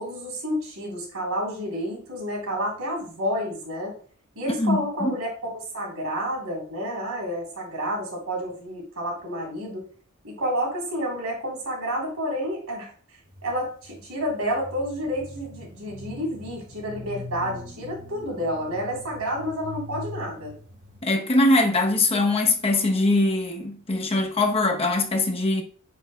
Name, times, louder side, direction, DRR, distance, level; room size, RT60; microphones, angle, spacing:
voice 1, 0.0-3.9 4.4-9.8 10.2-12.9 13.4-20.5, equal, 80° right, 3.6 m, -30 dB
voice 2, 4.6-5.1 21.0-25.6, left 2 dB, 25° left, 0.9 m, -22 dB
sound 1, 13.2-21.0, left 1 dB, 40° right, 1.0 m, -42 dB
9.4 x 6.6 x 2.2 m
head